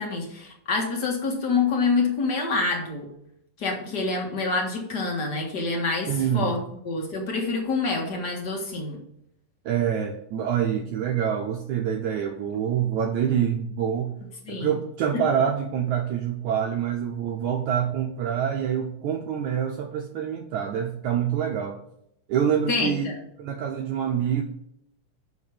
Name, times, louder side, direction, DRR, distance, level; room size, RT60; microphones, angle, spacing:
voice 1, 0.0-3.0 3.6-9.0 14.4-14.7 15.1-15.2 22.7-23.1, left 4 dB, 45° left, 0 dB, 1.4 m, -27 dB
voice 2, 6.1-6.5 9.6-14.1 14.5-21.8 22.3-23.1 23.4-24.4, right 8 dB, 80° right, 2 dB, 1.7 m, -26 dB
6.9 x 6.0 x 6.8 m, 0.75 s
omnidirectional pair, 4.2 m